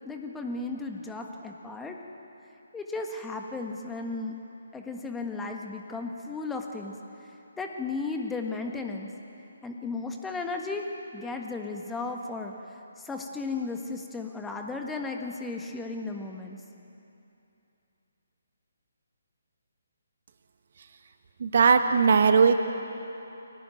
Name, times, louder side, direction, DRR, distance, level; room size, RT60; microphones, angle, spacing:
voice 1, 0.0-1.9 2.7-4.4 4.7-6.9 7.6-9.1 9.6-10.9 11.1-12.5 13.0-16.6, left 3 dB, 10° left, 2 dB, 1.5 m, -35 dB
voice 2, 21.4-22.5, right 5 dB, 55° right, 7 dB, 1.6 m, -19 dB
23.5 x 18.0 x 9.2 m, 2.9 s
figure-of-eight pair, 140°, 0 cm